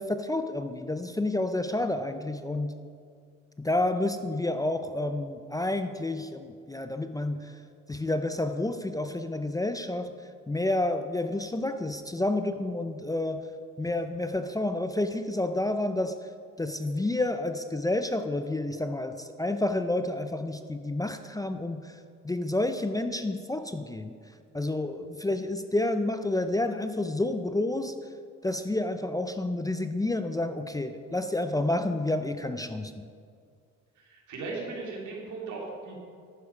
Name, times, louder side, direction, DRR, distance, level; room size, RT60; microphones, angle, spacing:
voice 1, 0.0-2.7 3.6-7.5 7.9-10.1 10.5-13.4 13.8-16.2 16.6-21.9 22.2-24.2 24.5-28.0 28.4-33.1, left 2 dB, 10° left, 9 dB, 0.5 m, -29 dB
voice 2, 34.1-36.0, right 3 dB, 75° right, -2 dB, 3.0 m, -37 dB
11.5 x 9.4 x 5.1 m, 2.2 s
cardioid pair, 90°, 30 cm